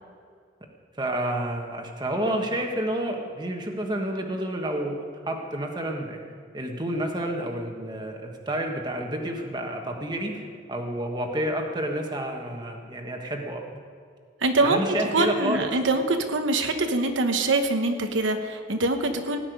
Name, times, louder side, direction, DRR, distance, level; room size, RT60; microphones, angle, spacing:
voice 1, 1.0-5.0 5.2-6.2 6.5-10.4 10.7-13.6 14.6-15.7, right 1 dB, 20° right, 2 dB, 1.4 m, -29 dB
voice 2, 14.4-19.4, right 2 dB, 80° right, 5 dB, 1.1 m, -24 dB
17.5 x 6.0 x 9.4 m, 2.2 s
head